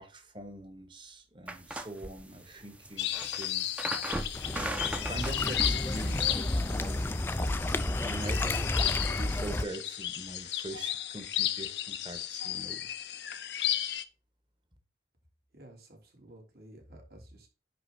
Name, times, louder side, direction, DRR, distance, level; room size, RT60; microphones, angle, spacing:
voice 1, 0.0-3.7 4.4-4.8 5.0-7.2 7.6-12.9, right 1 dB, 25° right, 1.6 m, -43 dB
sound 1, 1.5-7.4, right 1 dB, 10° right, 0.8 m, -40 dB
sound 2, 3.0-14.0, left 12 dB, 80° left, 0.8 m, -34 dB
sound 3, 4.3-9.6, left 1 dB, 15° left, 0.4 m, -31 dB
voice 2, 15.5-17.5, right 1 dB, 60° right, 3.3 m, -52 dB
10.5 x 3.9 x 5.5 m
head